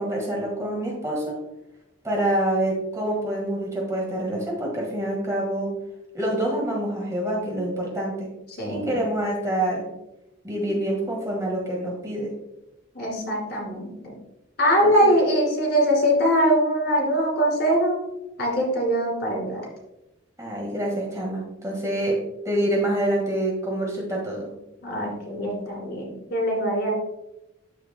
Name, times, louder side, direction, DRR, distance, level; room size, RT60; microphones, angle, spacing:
voice 1, 0.0-1.4 2.0-5.7 6.1-8.3 8.7-9.8 10.4-12.3 14.8-15.2 20.4-22.2 22.4-24.5, right 1 dB, 15° right, -2 dB, 1.6 m, -26 dB
voice 2, 8.6-9.0 12.9-14.1 14.6-18.0 18.4-19.6 24.8-26.9, equal, 50° left, -1 dB, 2.4 m, -22 dB
13.0 x 4.7 x 2.2 m, 0.90 s
head